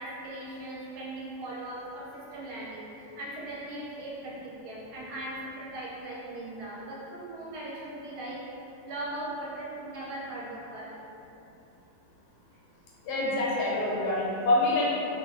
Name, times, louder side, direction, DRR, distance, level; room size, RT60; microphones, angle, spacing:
voice 1, 0.0-8.5 8.8-11.0, right 1 dB, 70° right, -6 dB, 1.1 m, -39 dB
voice 2, 13.0-14.8, left 2 dB, 75° left, -5 dB, 1.2 m, -26 dB
2.8 x 2.5 x 3.1 m, 2.9 s
omnidirectional pair, 1.9 m